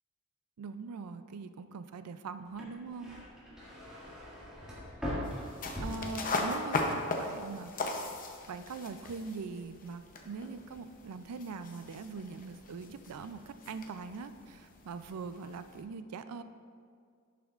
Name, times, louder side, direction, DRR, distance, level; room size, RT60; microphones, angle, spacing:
voice 1, 0.6-3.2 5.8-7.7 8.5-16.4, right 4 dB, 90° right, 11 dB, 0.4 m, -42 dB
sound 1, 2.5-6.7 7.1-7.6, equal, 5° right, 2.0 m, -41 dB
sound 2, 5.2-15.8, left 3 dB, 40° left, 0.7 m, -39 dB
11.5 x 6.8 x 2.4 m, 2.1 s
head